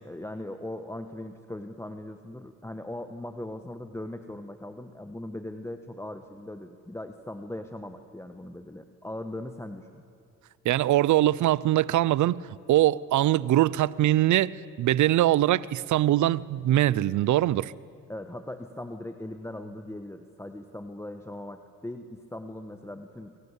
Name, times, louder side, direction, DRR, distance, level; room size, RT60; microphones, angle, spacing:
voice 1, 0.0-10.0 18.1-23.4, left 1 dB, 10° left, 7 dB, 1.5 m, -39 dB
voice 2, 10.6-12.4 12.7-17.7, right 14 dB, 75° right, 21 dB, 0.8 m, -22 dB
28.5 x 23.5 x 8.4 m, 2.6 s
cardioid pair, 90°, 30 cm